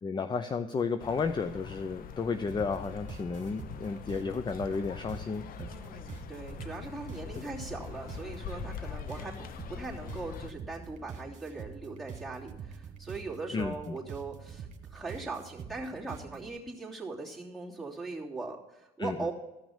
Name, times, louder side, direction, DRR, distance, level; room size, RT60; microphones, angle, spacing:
voice 1, 0.0-5.8 13.5-14.0 19.0-19.3, left 4 dB, 25° left, 10 dB, 0.6 m, -33 dB
sound 1, 1.0-10.5, left 7 dB, 60° left, 0.8 m, -44 dB
sound 2, 2.5-16.5, right 6 dB, 45° right, 1.8 m, -46 dB
voice 2, 5.7-19.3, right 3 dB, ahead, -2 dB, 3.0 m, -40 dB
14.5 x 6.0 x 7.3 m, 1.0 s
cardioid pair, 110°, 17 cm